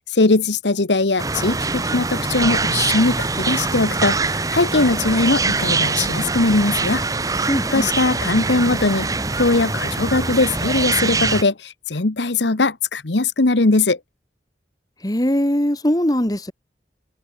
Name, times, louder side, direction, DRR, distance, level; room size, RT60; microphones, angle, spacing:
voice 1, 0.1-7.0 7.7-9.1 9.4-14.0, left 3 dB, 85° left, 1.2 m, -20 dB
sound 1, 1.2-11.4, right 3 dB, 20° right, 0.9 m, -23 dB
voice 2, 7.5-7.9 15.0-16.5, equal, 20° left, 1.6 m, -20 dB
head